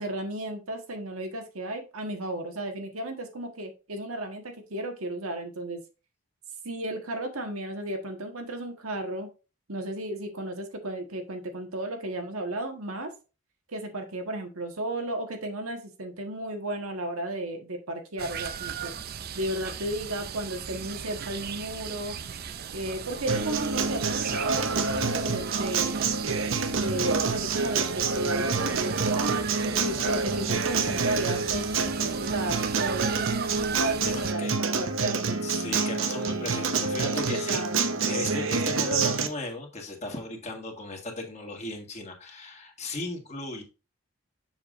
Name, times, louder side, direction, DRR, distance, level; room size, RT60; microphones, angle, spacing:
voice 1, 0.0-5.8 6.6-9.3 9.7-13.1 13.7-18.9 19.3-22.1 22.7-25.9 26.7-35.4 37.2-38.0, right 1 dB, 80° right, 4 dB, 1.5 m, -34 dB
sound 1, 18.2-34.3, right 7 dB, 45° right, 0.5 m, -36 dB
Acoustic guitar, 23.3-39.3, right 4 dB, 65° right, 0.8 m, -27 dB
voice 2, 34.1-34.5 35.4-43.6, left 2 dB, 30° left, 2 dB, 1.7 m, -36 dB
7.2 x 6.8 x 2.5 m, 0.31 s
head